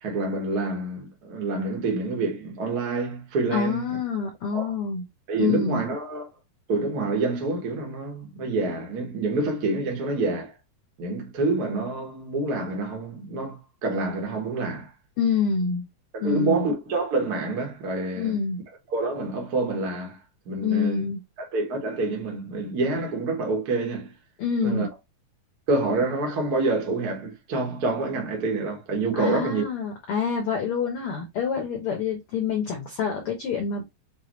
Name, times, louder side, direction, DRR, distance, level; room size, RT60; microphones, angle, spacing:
voice 1, 0.0-3.9 4.5-4.7 5.3-6.2 6.7-10.5 11.0-14.9 16.1-18.3 18.9-20.2 20.5-21.1 21.5-24.1 24.6-24.9 25.7-29.6, right 3 dB, 45° right, 1.2 m, -27 dB
voice 2, 3.5-5.1 5.4-5.8 15.2-15.9 16.2-16.7 18.1-18.6 20.6-21.2 24.4-24.9 29.2-33.8, left 5 dB, 85° left, 1.2 m, -26 dB
6.7 x 2.5 x 3.0 m
omnidirectional pair, 3.9 m